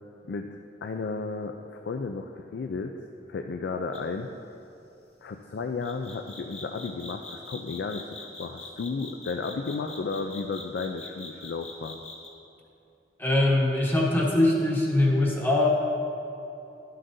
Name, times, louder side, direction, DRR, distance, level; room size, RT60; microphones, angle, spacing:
voice 1, 0.3-3.0 3.3-4.3 5.2-12.0, left 4 dB, 70° left, 4 dB, 0.4 m, -33 dB
sound 1, 3.9-4.2 5.8-12.3, left 3 dB, 35° left, 1.2 m, -43 dB
voice 2, 13.2-15.7, left 1 dB, 10° left, -4 dB, 1.1 m, -22 dB
11.5 x 7.7 x 2.6 m, 2.9 s
head